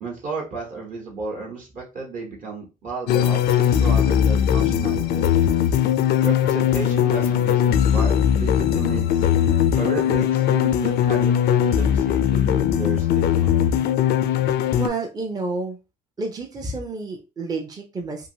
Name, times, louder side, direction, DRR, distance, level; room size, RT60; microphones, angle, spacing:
voice 1, 0.0-5.3 6.2-9.2 9.7-13.5, right 4 dB, 50° right, -2 dB, 1.1 m, -33 dB
sound 1, 3.1-14.9, left 9 dB, 70° left, 0.4 m, -20 dB
voice 2, 14.7-15.8 16.2-18.3, right 3 dB, 20° right, 2 dB, 0.6 m, -30 dB
2.8 x 2.6 x 2.7 m, 0.29 s
cardioid pair, 110°, 17 cm